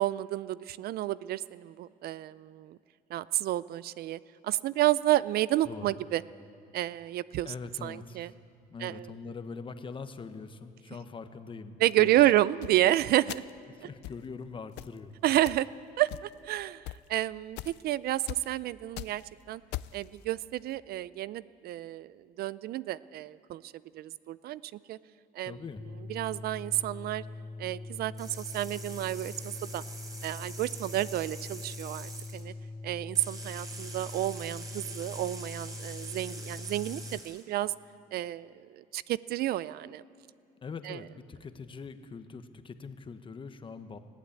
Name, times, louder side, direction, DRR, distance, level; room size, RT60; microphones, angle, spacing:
voice 1, 0.0-2.8 3.1-6.2 6.7-7.5 7.8-8.3 8.8-9.1 11.8-13.4 15.2-15.7 16.0-16.8 17.1-19.2 19.5-19.6 19.9-24.6 24.9-25.0 25.4-25.6 26.1-27.2 27.6-29.8 30.2-32.5 32.8-37.7 38.1-40.0 40.8-41.0, right 14 dB, 65° right, 18 dB, 0.4 m, -30 dB
voice 2, 7.4-8.3 8.7-12.3 13.8-15.1 25.4-25.8 40.6-44.0, left 5 dB, 30° left, 9 dB, 1.1 m, -43 dB
sound 1, 12.6-12.8 13.3-13.6 14.0-14.2 14.8-15.0 15.5-15.7 16.1-16.5 16.8-17.0 17.6-17.8 18.3-18.5 18.8-19.2 19.7-20.0, left 17 dB, 85° left, 0.4 m, -39 dB
sound 2, 25.8-37.2, left 2 dB, 10° left, 0.4 m, -43 dB
sound 3, 28.2-32.4 33.1-37.4, right 2 dB, 20° right, 3.4 m, -45 dB
20.5 x 15.0 x 8.6 m, 2.4 s
cardioid pair, 110°, 17 cm